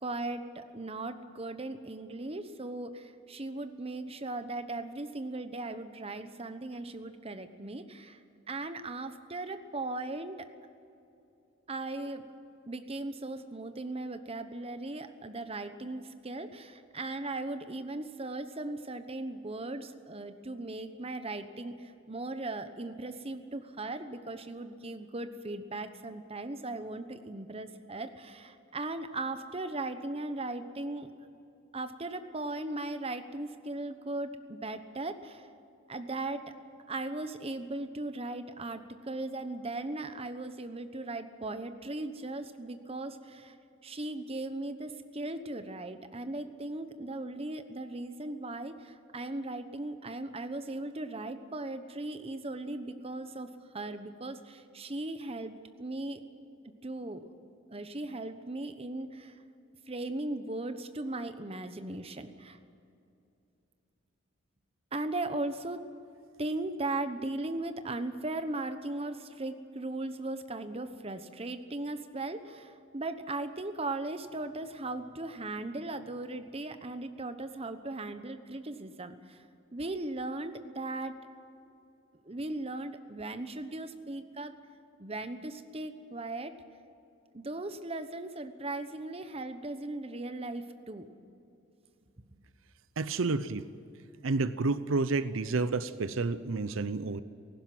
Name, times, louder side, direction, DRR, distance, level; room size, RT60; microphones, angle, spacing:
voice 1, 0.0-8.2 8.5-10.5 11.7-12.2 12.7-31.1 31.7-35.5 35.9-36.5 36.9-43.6 43.8-53.5 53.7-56.2 56.8-57.3 57.7-59.4 59.9-62.6 64.9-65.9 66.4-79.4 79.7-81.1 82.2-84.5 85.0-86.5 87.3-91.0, right 2 dB, 30° right, 9 dB, 1.0 m, -38 dB
voice 2, 93.0-93.6 94.2-97.2, right 3 dB, 90° right, 14 dB, 0.7 m, -30 dB
18.0 x 15.5 x 9.3 m, 2.7 s
head